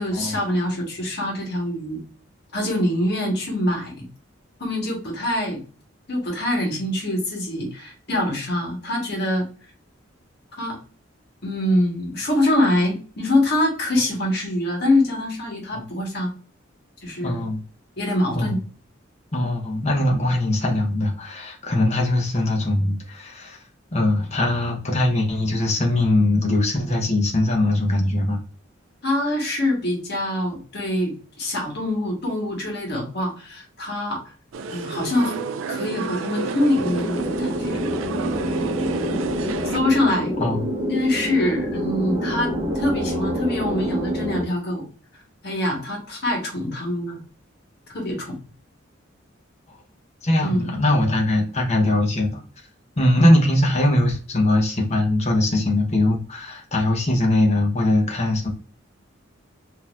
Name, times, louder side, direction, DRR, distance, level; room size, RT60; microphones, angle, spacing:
voice 1, 0.0-2.0 2.5-4.1 4.6-5.6 6.1-9.5 10.6-10.8 11.4-16.3 17.0-17.4 18.0-18.6 29.0-34.3 34.7-35.3 35.7-37.8 39.7-40.3 40.8-44.9 45.4-47.2 47.9-48.3 50.4-50.6 53.2-53.3, left 1 dB, 60° left, 0 dB, 1.4 m, -24 dB
voice 2, 17.2-17.6 18.4-18.6 19.3-23.6 23.9-28.4 40.4-40.6 50.2-52.4 53.0-58.5, left 1 dB, 35° left, 0 dB, 1.0 m, -21 dB
sound 1, 34.5-39.8, right 4 dB, 85° right, 0.4 m, -30 dB
sound 2, 36.8-44.4, equal, 15° right, 0.9 m, -26 dB
3.9 x 2.8 x 2.5 m, 0.38 s
head